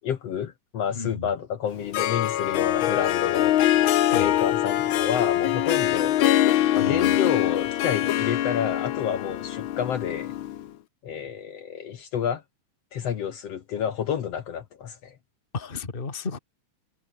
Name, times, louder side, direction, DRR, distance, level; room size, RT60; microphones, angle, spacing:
voice 1, 0.0-3.6 4.2-6.2 6.7-10.3 11.0-12.4 12.9-15.1, left 8 dB, 60° left, 2.3 m, -29 dB
voice 2, 0.9-1.3 4.1-4.4 6.8-7.1 15.5-16.4, left 4 dB, 20° left, 2.1 m, -33 dB
Harp, 1.7-10.7, left 13 dB, 80° left, 1.1 m, -23 dB
omnidirectional pair, 3.4 m